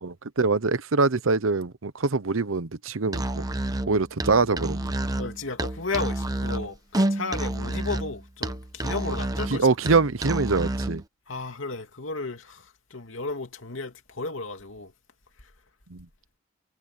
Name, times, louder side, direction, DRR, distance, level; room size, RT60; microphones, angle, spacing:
voice 1, 0.0-3.4 3.9-4.9 9.5-11.0 15.9-16.1, right 4 dB, 85° right, 0.9 m, -24 dB
Musical instrument, 3.1-11.0, right 1 dB, 20° right, 1.0 m, -29 dB
voice 2, 5.2-9.7 11.3-14.9, left 3 dB, 75° left, 2.8 m, -34 dB
head